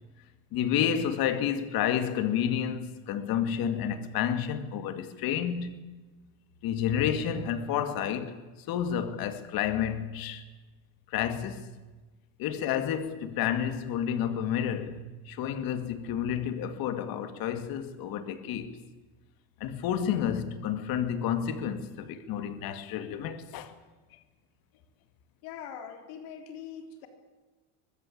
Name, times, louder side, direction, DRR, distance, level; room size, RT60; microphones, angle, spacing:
voice 1, 0.5-5.8 6.6-10.4 11.1-11.7 12.4-18.8 19.6-23.7 24.1-24.2, left 9 dB, 60° left, 2.4 m, -30 dB
voice 2, 25.4-27.1, left 8 dB, 75° left, 4.1 m, -42 dB
23.5 x 21.0 x 8.7 m
cardioid pair, 135°, 40 cm